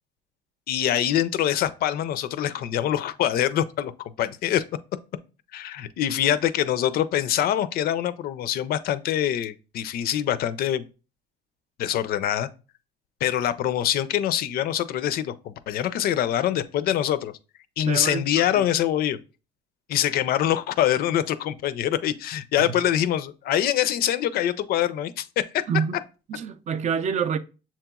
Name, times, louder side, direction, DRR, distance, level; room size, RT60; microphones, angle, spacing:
voice 1, 0.7-4.6 5.5-10.9 11.8-12.5 13.2-17.3 17.8-19.2 19.9-25.5, left 11 dB, 65° left, 0.4 m, -24 dB
voice 2, 17.9-18.6 22.6-22.8 25.7-26.0 26.3-27.4, right 7 dB, 45° right, 0.4 m, -27 dB
7.2 x 2.9 x 2.3 m
cardioid pair, 110°, 17 cm